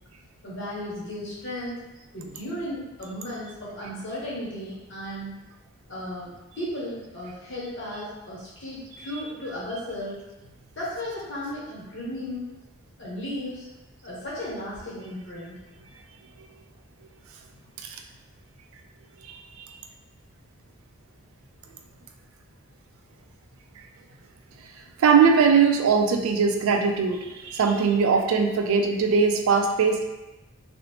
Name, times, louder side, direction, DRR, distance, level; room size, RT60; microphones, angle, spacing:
voice 1, 0.4-1.8 2.1-5.3 5.9-10.2 10.7-12.5 13.0-13.6 14.0-15.6, left 1 dB, 55° left, -7 dB, 0.9 m, -35 dB
voice 2, 25.0-30.0, right 5 dB, 75° right, 4 dB, 0.3 m, -20 dB
2.7 x 2.0 x 2.8 m, 1.0 s
head